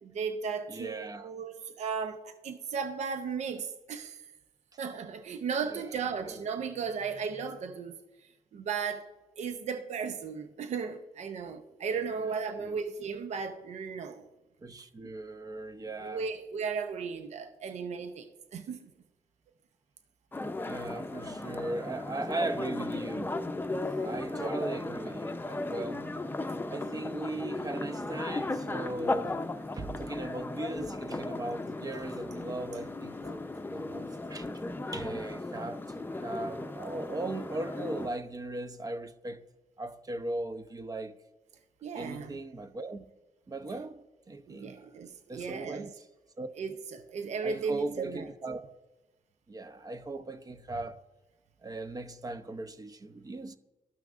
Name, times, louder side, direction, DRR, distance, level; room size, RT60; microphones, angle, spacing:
voice 1, 0.0-4.2 4.8-8.0 8.5-9.1 9.4-14.2 16.0-18.9 41.8-42.4 44.5-45.9 46.6-48.3, right 5 dB, 70° right, 0.6 m, -35 dB
voice 2, 0.7-1.3 5.7-5.8 6.2-6.4 12.2-12.8 14.6-16.3 20.6-23.3 24.0-26.1 26.7-29.4 29.7-34.5 34.9-39.4 39.8-41.2 41.9-43.1 43.5-44.8 45.3-46.0 46.4-46.5 47.4-48.7 49.5-51.0 51.6-53.6, right 2 dB, 30° right, 0.6 m, -38 dB
sound 1, 20.3-38.1, left 2 dB, 15° left, 0.6 m, -36 dB
13.5 x 5.8 x 2.5 m
cardioid pair, 70°, 12 cm